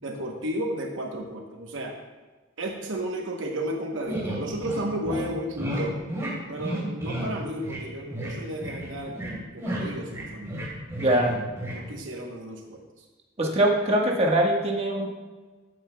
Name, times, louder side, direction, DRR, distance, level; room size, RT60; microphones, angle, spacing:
voice 1, 0.0-2.0 2.6-6.0 6.5-10.7 11.0-13.0, right 1 dB, 65° right, 1 dB, 1.0 m, -33 dB
sound 1, 4.1-4.8 5.1-5.2 5.6-5.8 6.1-6.3 6.6-7.3 7.6-7.8 8.1-8.3 8.6-9.3 9.6-11.3 11.6-11.8, right 1 dB, 15° right, 3.0 m, -32 dB
voice 2, 11.0-11.4 13.4-15.1, right 1 dB, 30° right, -1 dB, 1.4 m, -22 dB
14.5 x 9.7 x 2.3 m, 1.3 s
head